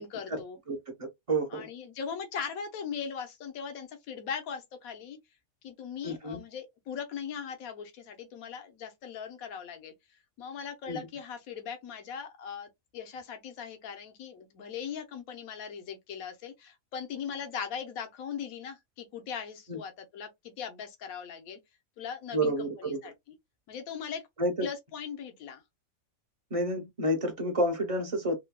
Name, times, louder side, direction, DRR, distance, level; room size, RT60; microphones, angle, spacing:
voice 1, 0.0-0.6 1.5-5.2 5.6-9.9 10.4-21.6 22.0-23.1 23.7-24.2 24.6-25.6, left 7 dB, 80° left, 1.2 m, -39 dB
voice 2, 0.7-1.7 6.0-6.4 10.9-11.0 19.7-19.8 22.3-23.0 24.4-24.7 26.5-28.4, right 1 dB, 30° right, 0.7 m, -30 dB
3.8 x 2.2 x 2.2 m
omnidirectional pair, 1.5 m